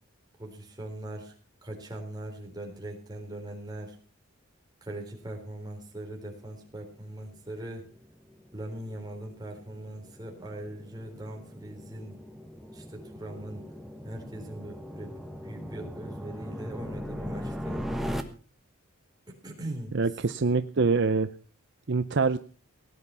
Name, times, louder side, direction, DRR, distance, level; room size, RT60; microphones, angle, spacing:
voice 1, 0.4-1.3 1.6-4.0 4.8-7.8 8.5-12.2 12.7-13.6 14.0-15.1 15.4-17.9 19.3-20.0, right 1 dB, 20° right, 1 dB, 3.8 m, -40 dB
sound 1, 7.1-18.2, equal, ahead, 1.2 m, -39 dB
voice 2, 19.9-21.3 21.9-22.4, right 4 dB, 55° right, 11 dB, 0.6 m, -25 dB
18.0 x 9.8 x 5.5 m, 0.38 s
head